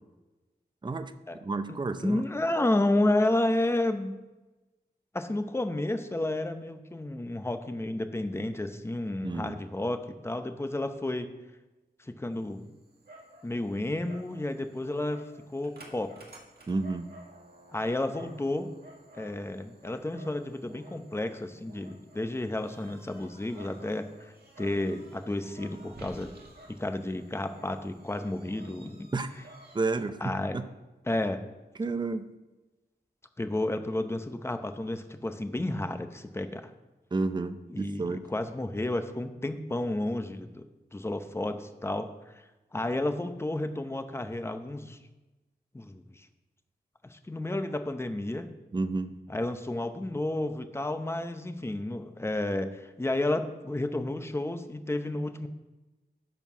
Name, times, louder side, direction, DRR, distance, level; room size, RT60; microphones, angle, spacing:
voice 1, 0.8-2.2 9.2-9.6 16.7-17.1 29.1-29.3 29.7-30.7 31.8-32.3 37.1-38.2 48.7-49.1, right 3 dB, 25° right, 10 dB, 0.5 m, -31 dB
voice 2, 2.0-4.1 5.1-11.3 12.0-12.7 13.4-15.2 15.5-16.1 17.7-18.8 19.1-26.3 26.7-29.1 30.2-30.6 31.1-31.4 33.4-36.7 37.7-40.6 40.9-42.1 42.7-45.0 45.7-46.3 47.1-48.5 49.3-55.5, left 1 dB, 15° left, 8 dB, 0.7 m, -31 dB
Dog, 12.3-30.1, right 1 dB, 65° right, 1.8 m, -53 dB
11.0 x 4.5 x 6.0 m, 1.1 s
wide cardioid pair, 110°, 17 cm